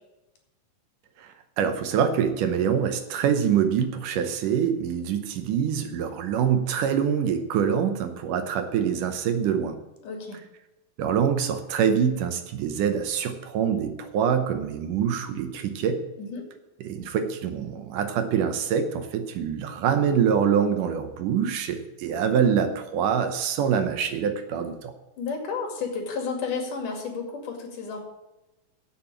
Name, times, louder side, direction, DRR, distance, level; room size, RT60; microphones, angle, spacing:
voice 1, 1.2-9.8 11.0-16.0 16.8-24.9, right 7 dB, 70° right, 8 dB, 2.3 m, -25 dB
voice 2, 10.0-10.4 16.2-16.4 25.2-28.0, left 5 dB, 65° left, 2 dB, 3.7 m, -32 dB
8.1 x 7.8 x 8.7 m, 1.0 s
omnidirectional pair, 4.1 m